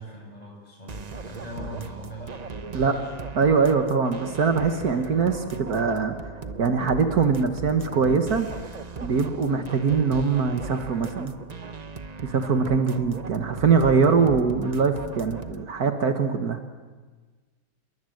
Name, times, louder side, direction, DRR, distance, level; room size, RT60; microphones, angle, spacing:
voice 1, 0.0-2.4 2.6-3.1, right 1 dB, 25° left, 0 dB, 7.4 m, -40 dB
sound 1, 0.9-15.7, right 4 dB, 35° right, 0.8 m, -38 dB
voice 2, 3.4-6.2 6.6-8.5 9.0-11.3 12.2-16.6, right 5 dB, 70° right, 6 dB, 1.9 m, -22 dB
27.5 x 22.5 x 7.9 m, 1.4 s
omnidirectional pair, 1.7 m